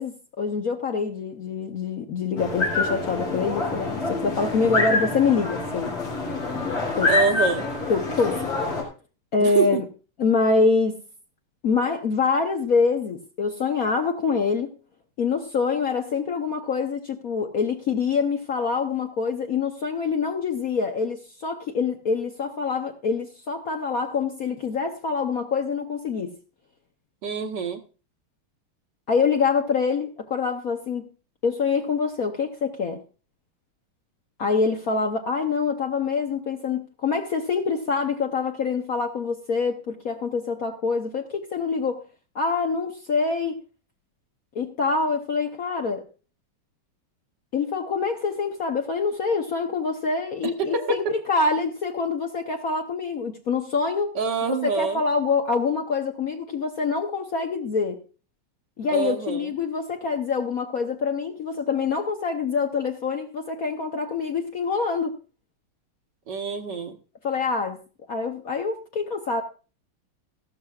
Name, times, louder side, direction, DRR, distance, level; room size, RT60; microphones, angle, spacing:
voice 1, 0.0-6.0 7.0-7.1 7.9-8.6 9.3-9.8 10.2-11.0 11.6-14.7 15.2-26.3 29.1-31.1 31.4-33.0 34.4-42.0 42.3-43.6 44.5-46.0 47.5-51.0 51.3-54.1 54.5-58.0 58.8-65.1 67.2-67.8 68.1-69.4, left 5 dB, 55° left, 1.0 m, -25 dB
sound 1, 2.4-8.8, left 3 dB, 85° left, 4.1 m, -26 dB
voice 2, 7.1-7.7 9.4-9.8 27.2-27.8 50.4-51.1 54.1-55.0 58.9-59.5 66.3-67.0, right 4 dB, 60° right, 1.5 m, -26 dB
14.5 x 12.5 x 2.3 m
omnidirectional pair, 2.4 m